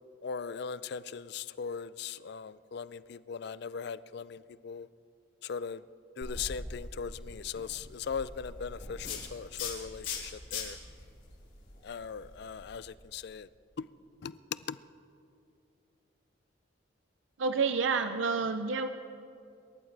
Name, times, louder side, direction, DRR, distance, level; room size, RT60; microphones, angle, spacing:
voice 1, 0.2-4.9 5.4-5.8 6.2-10.8 11.8-13.5 13.8-13.9 14.2-14.3 14.7-14.8, left 6 dB, 55° left, 17 dB, 0.4 m, -39 dB
sound 1, 6.2-12.8, left 4 dB, 75° left, 4.3 m, -42 dB
voice 2, 17.4-18.9, right 4 dB, 75° right, 8 dB, 0.6 m, -29 dB
26.0 x 13.5 x 3.3 m, 2.5 s
head